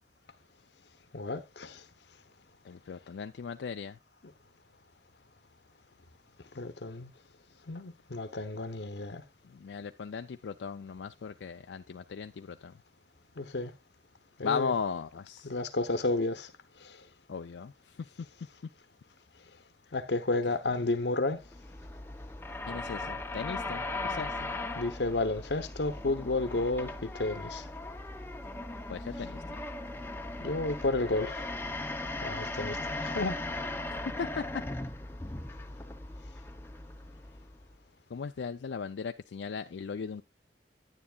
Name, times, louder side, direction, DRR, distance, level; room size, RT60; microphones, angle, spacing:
voice 1, 1.1-1.8 4.2-4.3 6.5-7.1 7.7-9.2 13.4-13.7 14.4-14.7 15.4-16.5 16.8-17.0 19.9-21.4 24.7-27.7 30.4-31.5 32.2-33.4, left 2 dB, 70° left, 0.9 m, -32 dB
voice 2, 2.6-4.0 9.4-12.7 14.4-15.5 17.3-18.1 20.8-20.9 22.7-24.4 28.9-29.6 33.9-34.4 38.1-40.2, left 5 dB, 85° left, 0.4 m, -37 dB
sound 1, 21.4-37.8, left 2 dB, 15° left, 0.7 m, -38 dB
9.8 x 9.5 x 2.4 m
head